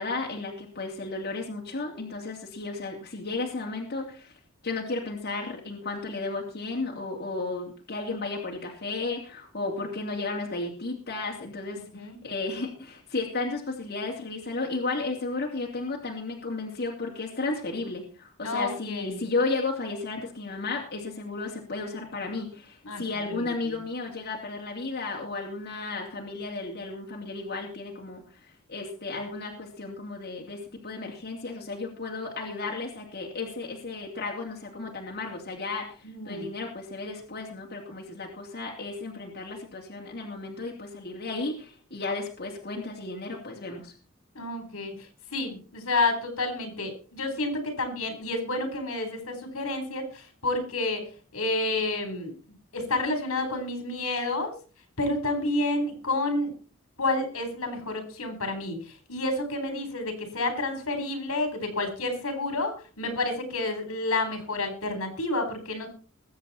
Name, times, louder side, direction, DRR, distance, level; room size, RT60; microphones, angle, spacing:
voice 1, 0.0-4.3 4.6-28.2 28.7-43.9, left 3 dB, 50° left, -1 dB, 2.8 m, -33 dB
voice 2, 18.4-19.2 22.8-23.0 23.3-23.8 36.0-36.5 44.3-44.9 45.3-51.0 51.3-52.3 52.7-54.5 55.0-56.5 57.0-65.9, left 2 dB, 80° left, 7 dB, 3.9 m, -30 dB
21.5 x 8.1 x 4.2 m, 0.37 s
head